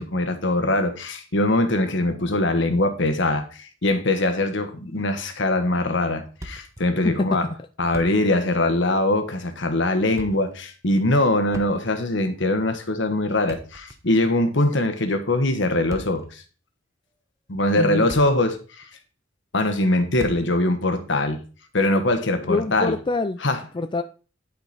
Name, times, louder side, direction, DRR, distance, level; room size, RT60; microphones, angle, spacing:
voice 1, 0.0-7.4 7.8-16.4 17.5-18.6 19.5-21.4 21.7-23.0 23.4-23.6, left 2 dB, 65° left, 1.4 m, -22 dB
Thump thud, 6.4-6.9 7.2-7.3 7.7-8.5 8.7-8.9 9.9-10.5 11.5-12.1 13.3-14.3 15.7-16.3 17.1-17.2 17.8-18.6 18.8-18.9 20.2-20.6, right 1 dB, 15° right, 1.0 m, -40 dB
voice 2, 7.0-7.6 17.8-18.1 22.4-23.4 23.7-24.0, left 3 dB, 25° left, 0.4 m, -25 dB
11.5 x 5.1 x 4.2 m
head